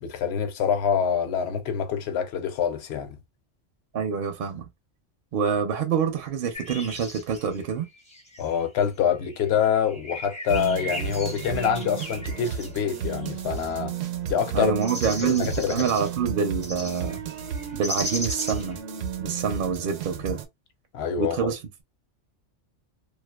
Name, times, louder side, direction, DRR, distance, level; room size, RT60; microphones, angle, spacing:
voice 1, 0.0-3.2 8.4-13.9 14.3-14.7 15.2-15.9 20.9-21.5, left 8 dB, 65° left, 0.8 m, -26 dB
voice 2, 3.9-4.7 5.3-7.9 14.5-17.2 17.7-18.8 19.2-20.4 21.2-21.8, right 6 dB, 60° right, 0.6 m, -26 dB
sound 1, 6.5-8.6 9.1-13.7 14.8-16.1 16.6-18.8, left 1 dB, 10° left, 0.5 m, -37 dB
sound 2, 10.5-20.4, right 7 dB, 85° right, 1.0 m, -33 dB
2.4 x 2.3 x 2.2 m
omnidirectional pair, 1.2 m